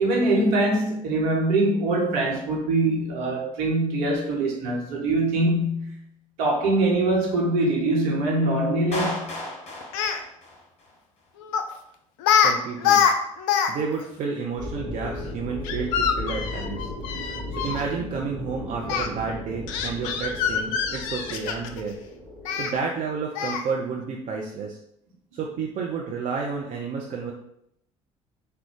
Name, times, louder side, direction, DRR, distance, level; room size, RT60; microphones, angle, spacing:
voice 1, 0.0-6.0 6.4-9.3, right 2 dB, 65° right, 1.0 m, -23 dB
Clapping, 8.9-10.9, left 1 dB, 35° left, 1.0 m, -34 dB
Speech, 9.8-10.2 11.5-11.7 12.2-12.5 12.8-13.7 14.0-14.1 15.6-17.8 18.9-19.1 19.7-21.8 22.5-22.7 23.4-23.7, left 7 dB, 65° left, 0.4 m, -24 dB
voice 2, 12.4-13.0 13.7-16.9 17.5-22.0 22.6-24.8 25.3-27.3, right 5 dB, 45° right, 0.5 m, -31 dB
sound 1, 14.6-22.8, left 1 dB, 90° right, 0.9 m, -36 dB
3.6 x 2.2 x 3.6 m
figure-of-eight pair, 50°, 18 cm